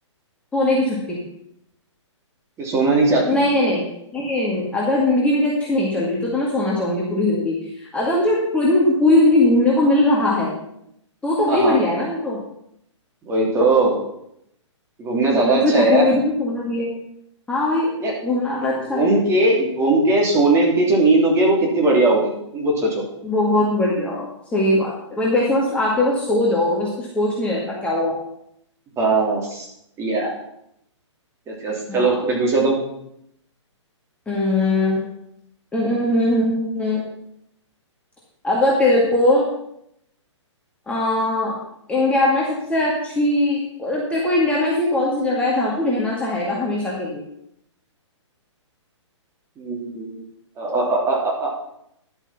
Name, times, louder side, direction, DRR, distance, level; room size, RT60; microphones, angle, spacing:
voice 1, 0.5-1.2 3.3-3.9 4.1-10.5 11.2-12.4 15.3-16.9 17.5-17.9 18.2-19.1 23.2-28.2 31.9-32.2 34.3-35.0 35.7-37.0 38.4-39.5 40.9-41.6 41.9-47.2, left 1 dB, 5° left, -5 dB, 2.1 m, -20 dB
voice 2, 2.6-3.4 11.5-11.8 13.3-14.0 15.0-16.1 18.0-18.1 18.9-23.0 29.0-29.6 30.0-30.3 31.5-32.8 49.6-50.2 50.6-51.5, right 2 dB, 15° right, -2 dB, 3.2 m, -19 dB
11.5 x 8.1 x 5.8 m, 0.76 s
hypercardioid pair, 140°, 16 cm